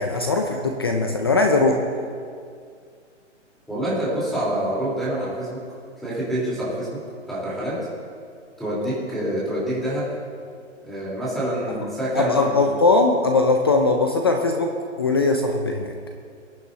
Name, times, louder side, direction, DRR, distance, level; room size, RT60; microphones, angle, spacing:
voice 1, 0.0-1.8 12.2-14.7 15.0-15.9, left 3 dB, 20° left, 3 dB, 0.4 m, -20 dB
voice 2, 3.7-5.6 6.0-7.0 7.3-7.8 8.6-10.1 10.8-12.6, right 1 dB, ahead, -9 dB, 3.5 m, -26 dB
21.5 x 9.9 x 2.8 m, 2.2 s
hypercardioid pair, 155°, 36 cm